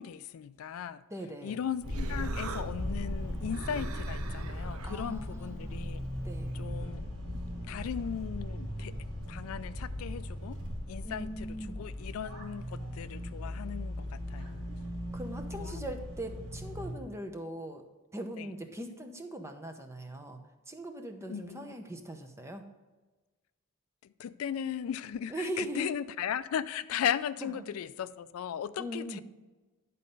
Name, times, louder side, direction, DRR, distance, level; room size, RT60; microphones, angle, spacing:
voice 1, 0.0-1.0 1.4-6.0 6.5-7.0 7.7-8.9 9.3-10.6 10.9-11.5 11.8-14.6 15.6-15.9 18.4-18.5 21.3-21.7 24.0-29.2, left 8 dB, 75° left, 15 dB, 0.3 m, -37 dB
voice 2, 1.1-1.6 4.8-5.8 6.2-6.5 11.0-11.8 15.1-17.8 18.1-22.7 25.3-25.9 27.4-27.6 28.8-29.2, right 1 dB, 15° right, 5 dB, 0.7 m, -40 dB
Human voice, 1.5-6.7, right 5 dB, 70° right, 0.5 m, -47 dB
sound 1, 1.8-16.9, equal, 90° right, 2.7 m, -38 dB
10.5 x 4.2 x 5.3 m, 1.2 s
head